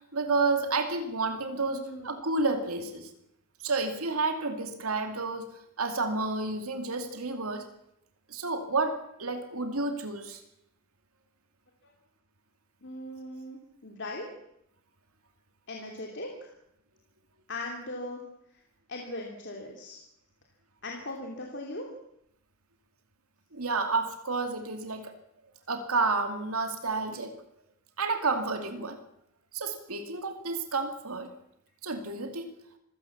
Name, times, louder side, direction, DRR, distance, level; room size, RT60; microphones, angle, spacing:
voice 1, 0.1-3.1 3.6-5.5 5.8-7.6 8.3-10.4 23.5-25.1 25.7-27.3 28.0-29.0 29.5-31.3 31.8-32.5, right 3 dB, 80° right, 6 dB, 2.4 m, -30 dB
voice 2, 1.3-2.1 11.8-11.9 12.8-14.3 15.7-16.3 17.5-18.2 18.9-20.0 20.8-21.9, left 2 dB, 55° left, 0 dB, 3.0 m, -39 dB
25.5 x 16.5 x 7.2 m, 0.80 s
head